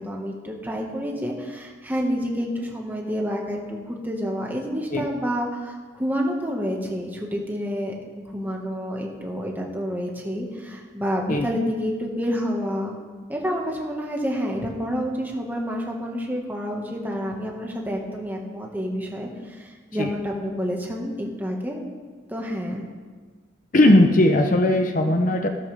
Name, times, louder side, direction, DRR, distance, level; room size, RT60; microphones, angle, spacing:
voice 1, 0.0-13.0 13.3-21.8 22.3-22.8, equal, 10° right, -1 dB, 1.8 m, -29 dB
voice 2, 23.7-25.5, left 1 dB, 45° left, 5 dB, 0.8 m, -18 dB
17.5 x 13.0 x 3.6 m, 1.5 s
head